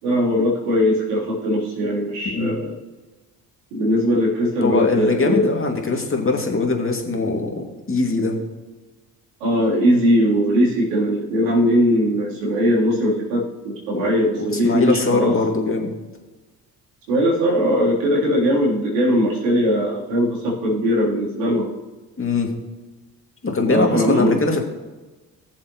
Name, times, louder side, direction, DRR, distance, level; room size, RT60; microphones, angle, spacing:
voice 1, 0.0-2.7 3.7-5.5 9.4-15.4 17.1-21.7 23.7-24.4, equal, 85° right, -5 dB, 3.5 m, -20 dB
voice 2, 4.6-8.4 13.9-14.1 14.4-15.9 22.2-22.5 23.4-24.6, left 3 dB, 25° left, 2 dB, 2.4 m, -22 dB
18.5 x 7.2 x 3.1 m, 1.2 s
hypercardioid pair, 50°, 47 cm